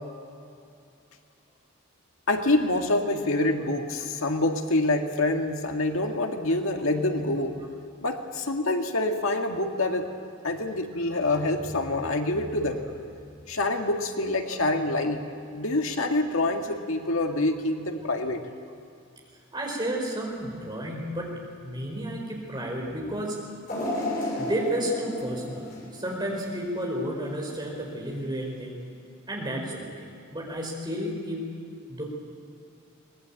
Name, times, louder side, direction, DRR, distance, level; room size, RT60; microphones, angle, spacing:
voice 1, 2.3-7.6 8.0-10.1 10.4-12.8 13.5-15.2 15.5-18.4, left 2 dB, 80° left, 4 dB, 1.9 m, -26 dB
voice 2, 19.5-23.4 24.4-25.6 25.9-28.8 29.3-30.0 30.3-31.6 31.9-32.0, equal, 20° right, -1 dB, 5.0 m, -32 dB
sound 1, 23.7-26.8 27.3-27.4 28.4-28.5, left 1 dB, 40° left, 6.3 m, -33 dB
23.5 x 19.5 x 8.9 m, 2.5 s
head